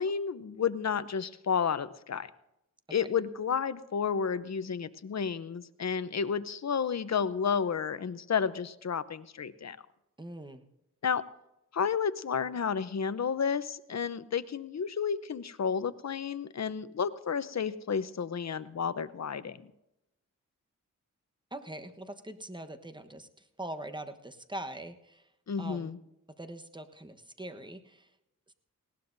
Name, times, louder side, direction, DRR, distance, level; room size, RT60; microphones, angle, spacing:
voice 1, 0.0-2.3 2.9-9.8 11.0-11.2 11.7-19.6 25.5-26.0, left 6 dB, 55° left, 13 dB, 0.8 m, -31 dB
voice 2, 10.2-10.6 21.5-23.3 23.6-25.2 25.6-25.9 26.4-28.1, right 1 dB, 15° right, 7 dB, 1.1 m, -42 dB
19.5 x 17.5 x 2.7 m, 0.88 s
wide cardioid pair, 70°, 33 cm